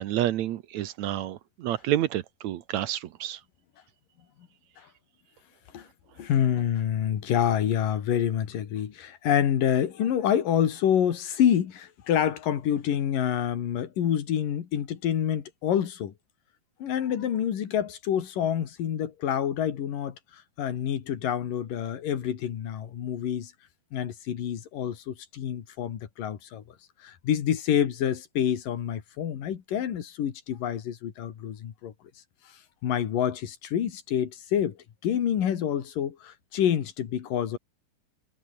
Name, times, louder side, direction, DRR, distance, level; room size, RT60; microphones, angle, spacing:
voice 1, 0.0-3.4, right 13 dB, 70° right, 2.0 m, -29 dB
voice 2, 6.2-16.1 16.8-23.5 23.9-26.6 27.0-31.9 32.8-34.8 35.0-37.6, left 9 dB, 90° left, 3.8 m, -27 dB
omnidirectional pair, 3.7 m